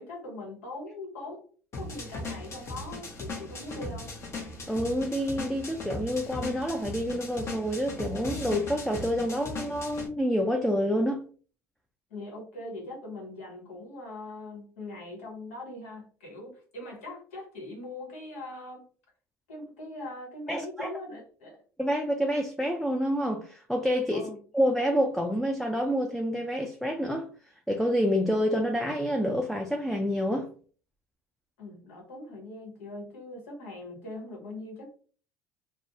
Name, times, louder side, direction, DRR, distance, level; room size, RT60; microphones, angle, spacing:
voice 1, 0.0-1.5 1.8-4.2 12.1-18.9 19.5-21.6 24.1-24.4 31.6-35.0, left 2 dB, 80° left, 1.0 m, -41 dB
sound 1, 1.7-10.1, left 2 dB, 40° left, 0.8 m, -38 dB
voice 2, 4.7-11.2 20.5-20.9 21.8-27.3 27.7-30.5, equal, ahead, 0.4 m, -28 dB
2.4 x 2.0 x 2.5 m
hypercardioid pair, 70°, 7 cm